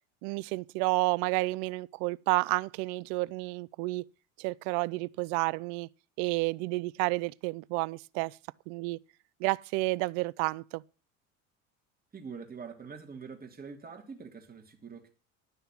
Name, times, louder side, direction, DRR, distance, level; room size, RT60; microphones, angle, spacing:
voice 1, 0.2-4.0 4.4-5.9 6.2-8.4 8.7-9.0 9.4-10.8, right 23 dB, 55° right, 0.6 m, -30 dB
voice 2, 12.1-15.1, right 5 dB, 20° right, 2.9 m, -44 dB
12.0 x 6.7 x 7.5 m
hypercardioid pair, 75°, 40 cm